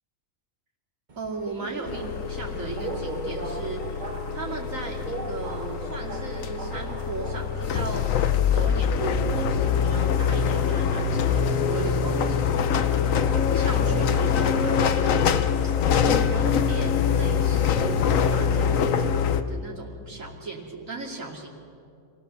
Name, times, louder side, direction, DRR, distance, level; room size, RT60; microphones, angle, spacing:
Subway metro underground, 1.1-7.9, right 2 dB, 35° right, 1.3 m, -38 dB
voice 1, 1.2-8.1 8.5-12.9 13.5-15.7 16.3-21.5, right 3 dB, 70° right, -1 dB, 3.0 m, -36 dB
sound 1, 1.9-19.4, left 7 dB, 70° left, 1.2 m, -24 dB
26.5 x 17.5 x 6.8 m, 2.6 s
omnidirectional pair, 1.4 m